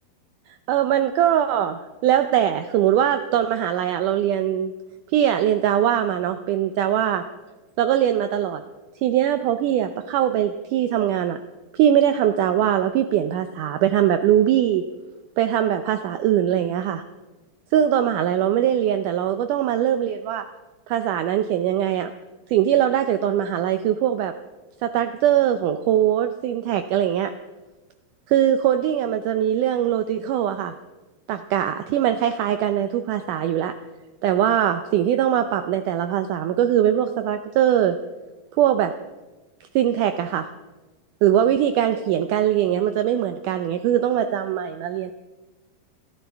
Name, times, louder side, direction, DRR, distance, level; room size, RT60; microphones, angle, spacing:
voice 1, 0.5-4.7 5.1-7.2 7.8-8.6 9.0-11.4 11.7-14.8 15.4-17.0 17.7-20.5 20.9-22.1 22.5-24.3 24.8-27.3 28.3-30.7 31.3-33.8 34.2-38.0 38.6-38.9 39.8-40.5 41.2-45.1, right 10 dB, 85° right, 8 dB, 1.8 m, -21 dB
28.0 x 12.5 x 3.5 m, 1.2 s
omnidirectional pair, 4.4 m